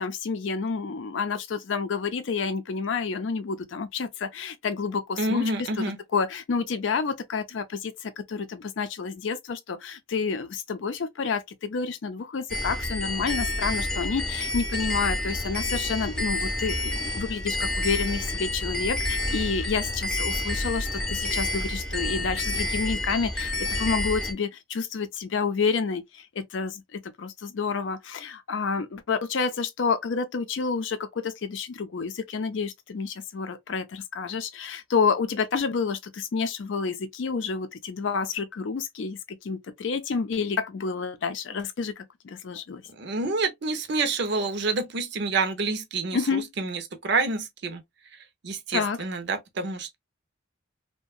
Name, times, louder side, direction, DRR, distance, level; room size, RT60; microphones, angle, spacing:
voice 1, 0.0-5.4 5.8-42.8 46.1-46.5 48.7-49.0, left 5 dB, 70° left, 0.5 m, -29 dB
voice 2, 5.2-6.0 43.0-47.8 48.1-50.0, right 3 dB, 60° right, 0.6 m, -28 dB
sound 1, 12.5-24.3, left 1 dB, 5° left, 0.6 m, -29 dB
2.7 x 2.1 x 2.3 m
head